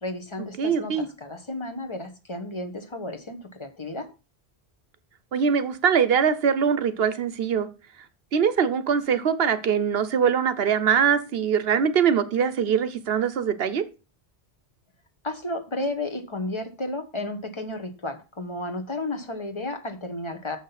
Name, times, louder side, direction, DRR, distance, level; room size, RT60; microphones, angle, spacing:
voice 1, 0.0-4.1 15.2-20.6, left 2 dB, 30° left, 1.2 m, -33 dB
voice 2, 0.6-1.1 5.3-7.7 8.3-13.8, right 7 dB, 70° right, 1.0 m, -22 dB
7.0 x 6.0 x 5.7 m
omnidirectional pair, 1.1 m